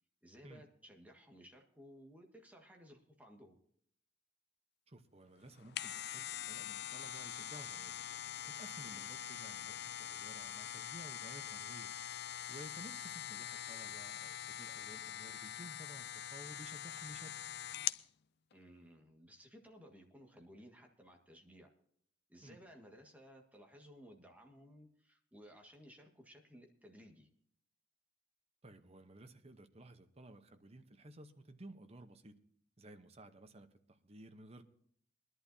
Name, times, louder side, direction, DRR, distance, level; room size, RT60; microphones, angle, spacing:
voice 1, 0.2-3.6 8.8-9.1 18.5-21.7 22.3-27.3, equal, 10° right, 1 dB, 1.7 m, -58 dB
voice 2, 4.9-8.1 8.5-11.9 12.3-17.4 22.4-22.6 28.6-32.4 32.8-34.6, right 1 dB, 35° right, 8 dB, 1.0 m, -55 dB
sound 1, 5.5-18.1 18.5-18.6, left 11 dB, 60° left, 0.4 m, -44 dB
22.0 x 11.0 x 2.8 m, 0.66 s
head